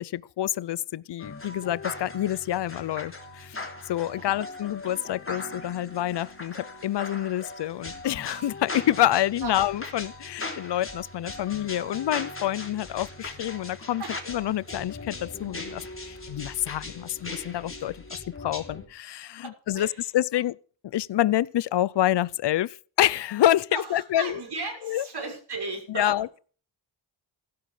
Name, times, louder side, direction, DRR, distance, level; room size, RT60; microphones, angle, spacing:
voice 1, 0.0-14.0 14.3-18.0 18.4-20.6 20.8-24.4 24.8-25.0 25.9-26.4, left 13 dB, 65° left, 0.7 m, -27 dB
sound 1, 1.2-18.9, left 2 dB, 30° left, 3.5 m, -39 dB
voice 2, 4.0-4.4 9.4-9.6 14.0-14.2 19.4-20.1 23.7-26.4, right 3 dB, 55° right, 6.4 m, -36 dB
15.5 x 12.5 x 4.9 m
cardioid pair, 80°, 46 cm